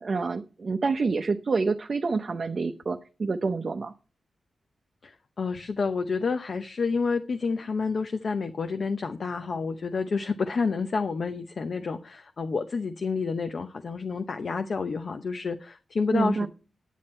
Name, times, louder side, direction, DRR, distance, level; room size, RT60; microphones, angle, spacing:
voice 1, 0.0-3.9 16.1-16.5, right 4 dB, 45° right, 5 dB, 0.7 m, -27 dB
voice 2, 5.0-16.5, left 4 dB, 50° left, 7 dB, 0.8 m, -29 dB
9.6 x 9.2 x 4.4 m, 0.33 s
wide cardioid pair, 130°, 0 cm